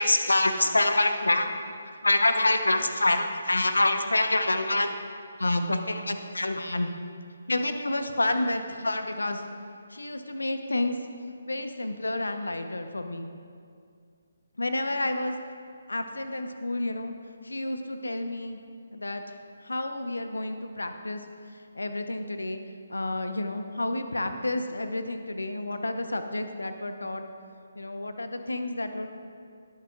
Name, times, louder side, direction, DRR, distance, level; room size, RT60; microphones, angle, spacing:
voice 1, 0.0-1.5 2.0-4.9 5.4-6.9 7.5-9.4 9.9-11.0 11.5-13.3 14.6-15.3 15.9-17.1 17.4-18.6 18.9-19.2 19.6-21.2 21.7-22.6 22.9-27.2 27.8-29.1, left 2 dB, 70° left, 7 dB, 0.9 m, -28 dB
19.0 x 8.8 x 2.4 m, 2.3 s
figure-of-eight pair, 140°, 0 cm